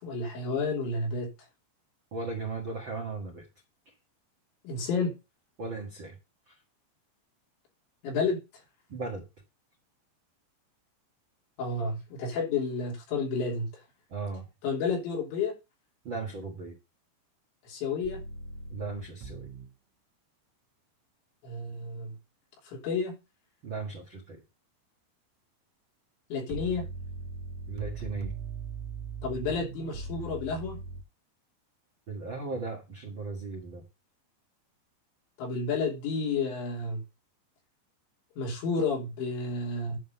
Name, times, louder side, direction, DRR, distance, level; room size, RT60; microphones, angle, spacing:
voice 1, 0.0-1.3 4.6-5.1 8.0-8.4 11.6-13.7 14.6-15.5 17.7-18.3 21.4-22.1 22.7-23.2 26.3-26.9 29.2-30.8 35.4-37.0 38.4-40.0, left 4 dB, 80° left, 5.5 m, -31 dB
voice 2, 2.1-3.4 5.6-6.2 6.5-6.6 8.9-9.2 14.1-14.5 16.0-16.7 18.7-19.5 23.6-24.4 27.7-28.3 32.1-33.8, right 3 dB, 70° right, 1.1 m, -37 dB
sound 1, 18.0-19.7 26.5-31.0, right 4 dB, 90° right, 3.4 m, -39 dB
10.5 x 3.7 x 6.9 m
omnidirectional pair, 5.2 m